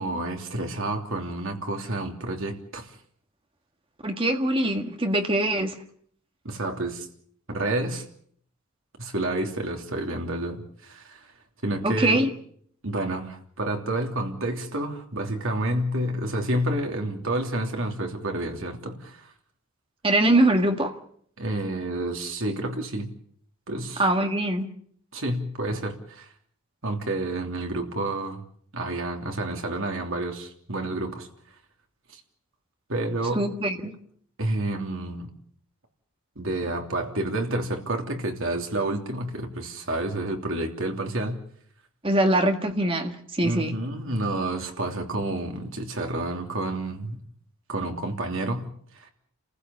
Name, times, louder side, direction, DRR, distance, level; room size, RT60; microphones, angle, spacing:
voice 1, 0.0-2.9 6.4-7.1 7.5-8.0 9.0-11.3 11.6-12.3 12.8-19.3 21.4-23.1 23.7-24.0 25.1-26.3 26.8-28.4 28.7-31.3 32.1-32.2 32.9-33.4 34.4-35.3 36.4-41.4 43.4-47.2 47.7-48.7 48.9-49.1, right 1 dB, 60° right, 3 dB, 3.1 m, -29 dB
voice 2, 4.0-5.8 11.8-12.3 20.0-20.9 24.0-24.7 33.4-34.0 42.0-43.7, right 1 dB, 25° right, 5 dB, 1.8 m, -23 dB
30.0 x 15.5 x 7.2 m, 0.63 s
head